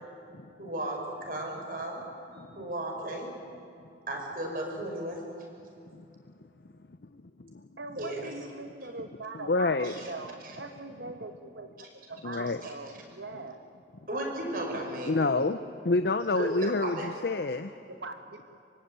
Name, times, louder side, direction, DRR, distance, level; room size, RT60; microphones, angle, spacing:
voice 1, 0.6-2.0 2.3-3.3 4.1-5.2 8.0-8.3 9.8-10.1 10.4-10.5 12.6-12.7 14.1-15.5 16.4-17.1, right 1 dB, 50° right, 1 dB, 5.7 m, -35 dB
voice 2, 7.8-13.6 16.3-16.8 17.9-18.4, right 3 dB, 85° right, 7 dB, 2.0 m, -41 dB
voice 3, 9.5-10.0 12.2-12.6 15.0-15.6 15.8-17.7, left 3 dB, 70° left, 10 dB, 0.7 m, -28 dB
24.5 x 24.5 x 9.0 m, 2.6 s
head